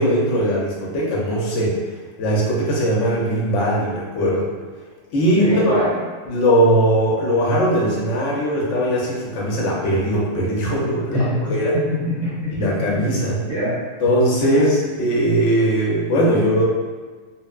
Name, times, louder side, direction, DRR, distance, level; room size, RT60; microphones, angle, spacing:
voice 1, 0.0-1.8 2.2-4.5 5.1-5.8 6.3-11.7 12.5-13.4 14.0-16.6, equal, 70° left, -4 dB, 1.0 m, -19 dB
voice 2, 5.3-5.9 11.1-11.4 11.7-12.7 12.9-13.8, equal, 50° right, -12 dB, 1.4 m, -24 dB
2.9 x 2.0 x 2.3 m, 1.5 s
omnidirectional pair, 1.3 m